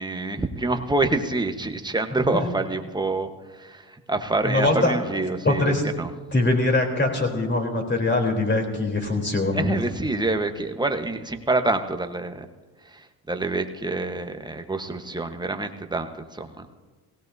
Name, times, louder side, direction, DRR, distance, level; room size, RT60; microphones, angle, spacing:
voice 1, 0.0-6.1 9.5-12.4 12.8-16.7, right 2 dB, 10° right, 6 dB, 1.2 m, -27 dB
voice 2, 4.4-4.9 5.4-5.8 6.3-9.7, left 2 dB, 25° left, 2 dB, 3.6 m, -22 dB
18.5 x 17.0 x 2.8 m, 1.3 s
supercardioid pair, 70°, 44 cm